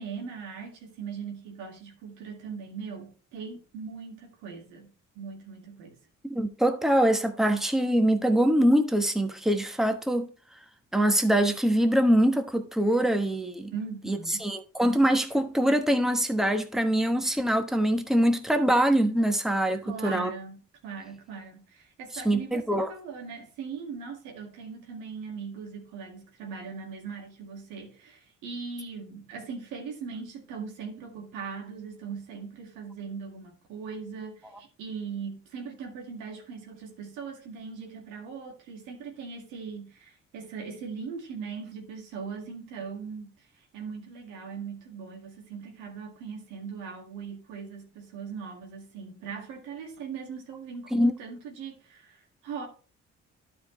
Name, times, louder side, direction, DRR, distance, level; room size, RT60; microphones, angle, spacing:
voice 1, 0.0-6.0 13.7-14.5 19.7-52.7, right 5 dB, 90° right, 1.9 m, -40 dB
voice 2, 6.3-10.3 10.9-13.7 14.1-20.3 22.1-22.9 50.9-51.1, right 1 dB, ahead, 1.2 m, -24 dB
12.0 x 5.0 x 3.1 m
supercardioid pair, 55°, 30 cm